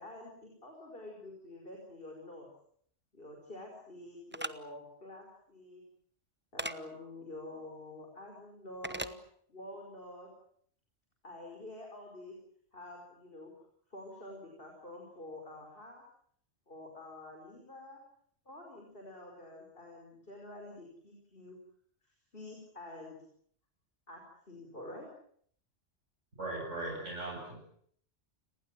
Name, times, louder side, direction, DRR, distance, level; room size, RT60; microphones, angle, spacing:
voice 1, 0.0-2.5 3.1-5.8 6.5-9.1 9.5-10.3 11.2-12.3 12.7-13.5 13.9-16.0 16.7-18.0 18.5-21.6 22.3-23.2 24.1-25.1, left 1 dB, 50° left, 1 dB, 5.6 m, -48 dB
sound 1, 4.3-4.5 6.6-6.8 8.8-9.2, right 1 dB, 10° right, 0.9 m, -37 dB
voice 2, 26.4-27.6, right 2 dB, 90° right, -1 dB, 8.2 m, -38 dB
30.0 x 19.5 x 7.7 m, 0.62 s
omnidirectional pair, 1.2 m